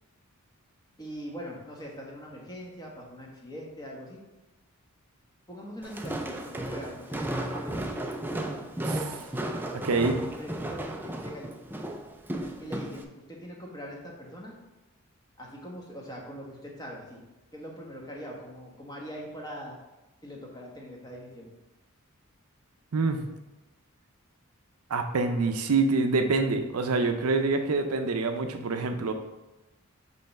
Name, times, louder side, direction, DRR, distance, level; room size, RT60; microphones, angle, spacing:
voice 1, 1.0-4.2 5.5-8.1 10.4-11.8 12.6-14.6 15.4-17.2 17.5-19.8 20.2-21.5, equal, 20° left, -2 dB, 1.2 m, -42 dB
Walk footsteps, 5.8-13.0, right 1 dB, 10° right, 0.4 m, -34 dB
voice 2, 8.8-9.2 9.8-10.2 22.9-23.2 24.9-29.1, right 3 dB, 90° right, 6 dB, 0.6 m, -26 dB
5.3 x 3.3 x 5.6 m, 1.0 s
head